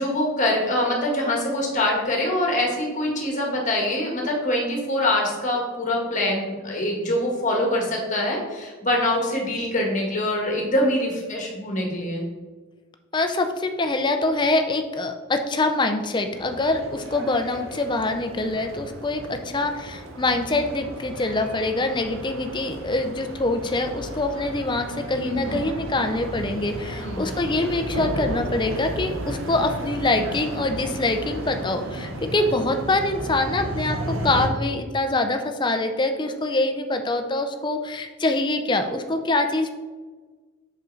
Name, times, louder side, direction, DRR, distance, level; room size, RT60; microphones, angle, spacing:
voice 1, 0.0-12.2 25.2-25.6 27.0-27.3, left 1 dB, 40° left, 0 dB, 1.5 m, -24 dB
voice 2, 13.1-39.7, left 2 dB, 20° left, 6 dB, 0.5 m, -24 dB
sound 1, 16.3-34.5, right 1 dB, 70° right, 0.9 m, -34 dB
6.2 x 5.3 x 3.9 m, 1.4 s
head